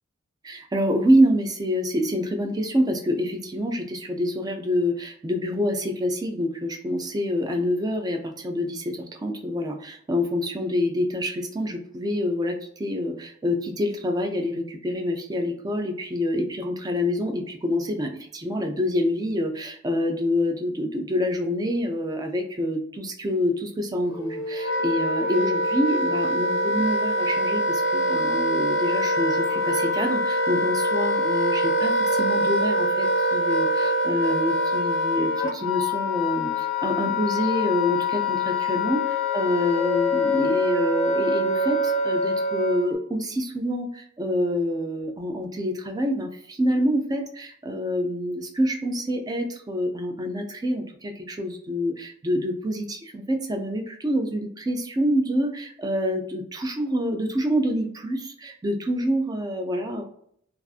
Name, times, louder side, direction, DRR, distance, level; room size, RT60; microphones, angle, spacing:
voice 1, 0.4-60.0, equal, 20° right, 4 dB, 0.3 m, -26 dB
Wind instrument woodwind instrument, 24.1-42.9, left 1 dB, 65° left, 0.5 m, -24 dB
2.4 x 2.4 x 2.3 m, 0.67 s
head